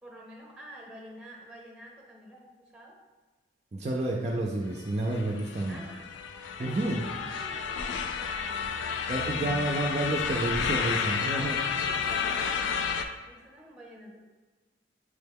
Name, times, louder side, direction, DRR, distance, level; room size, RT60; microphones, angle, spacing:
voice 1, 0.0-3.0 5.7-9.6 11.6-12.9 13.3-14.2, right 1 dB, 5° right, -1 dB, 0.7 m, -48 dB
voice 2, 3.7-5.8 6.6-7.0 9.1-11.6, right 2 dB, 35° right, -1 dB, 0.3 m, -30 dB
sound 1, 4.9-13.0, left 6 dB, 75° left, 0.3 m, -31 dB
6.2 x 2.2 x 3.4 m, 1.3 s
head